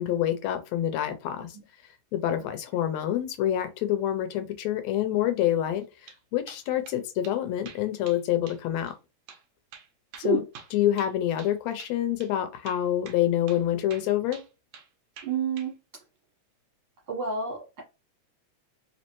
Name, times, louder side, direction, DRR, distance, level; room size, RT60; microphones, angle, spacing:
voice 1, 0.0-1.6 2.1-8.9 10.2-10.4 10.7-14.4, left 11 dB, 80° left, 8 dB, 1.7 m, -27 dB
sound 1, 5.8-6.2 6.5-7.0 7.2-7.4 7.6-8.2 8.5-8.6 8.9-9.0 9.3-9.4 9.7-11.5 11.8-11.9 12.2-12.3 12.6-13.6 13.9-14.9 15.2-15.7, right 6 dB, 75° right, 1.1 m, -47 dB
voice 2, 15.2-15.7 17.1-17.8, right 6 dB, 50° right, -3 dB, 1.6 m, -30 dB
4.2 x 3.1 x 3.0 m, 0.28 s
omnidirectional pair, 3.3 m